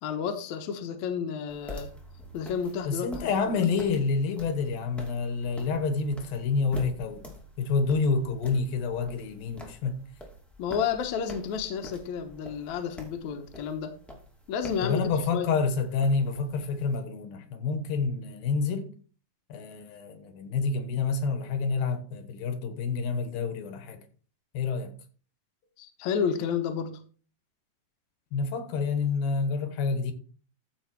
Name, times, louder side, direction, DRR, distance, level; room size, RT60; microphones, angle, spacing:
voice 1, 0.0-1.9 2.3-3.3 10.6-13.9 14.5-15.5 25.8-27.0, left 7 dB, 65° left, 2.2 m, -31 dB
sound 1, 1.5-16.9, equal, ahead, 1.5 m, -47 dB
voice 2, 2.9-7.3 7.6-10.0 14.8-18.9 19.5-24.0 24.5-24.9 28.3-30.1, left 4 dB, 80° left, 3.0 m, -28 dB
14.0 x 5.4 x 4.6 m
omnidirectional pair, 4.1 m